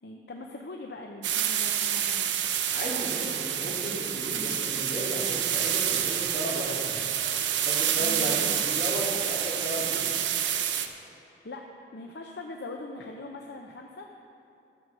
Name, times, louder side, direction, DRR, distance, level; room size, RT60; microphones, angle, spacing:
voice 1, 0.0-2.6 8.0-8.6 11.0-14.1, left 2 dB, 70° left, 1 dB, 0.7 m, -41 dB
sound 1, 1.2-10.9, right 10 dB, 90° right, 0.7 m, -28 dB
voice 2, 2.7-7.0 7.7-10.0, equal, 50° left, -5 dB, 2.5 m, -34 dB
12.5 x 6.9 x 6.2 m, 2.9 s
head